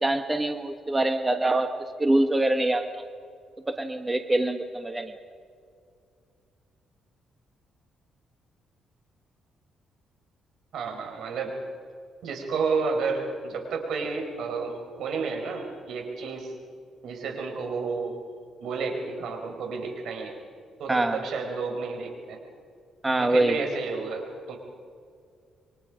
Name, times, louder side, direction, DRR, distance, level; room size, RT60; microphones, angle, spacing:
voice 1, 0.0-1.7 2.0-3.1 3.7-5.1 20.9-21.2 23.0-23.7, right 1 dB, 15° right, 7 dB, 1.4 m, -24 dB
voice 2, 10.7-11.5 12.2-16.5 17.0-18.2 18.6-20.3 20.8-22.4 23.2-24.6, right 4 dB, 75° right, 3 dB, 5.3 m, -31 dB
28.0 x 24.5 x 5.2 m, 2.2 s
cardioid pair, 90°, 0 cm